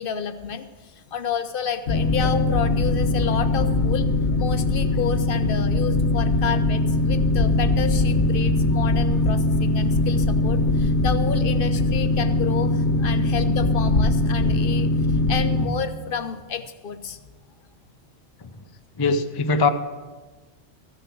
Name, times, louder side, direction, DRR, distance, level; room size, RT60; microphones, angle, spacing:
voice 1, 0.0-4.1 4.4-17.2, left 7 dB, 55° left, 9 dB, 0.7 m, -30 dB
Boat Water vehicle, 1.9-15.7, left 2 dB, 75° left, 1.2 m, -21 dB
voice 2, 19.0-19.7, left 4 dB, 35° left, 7 dB, 0.4 m, -21 dB
14.5 x 6.9 x 6.0 m, 1.3 s
omnidirectional pair, 1.2 m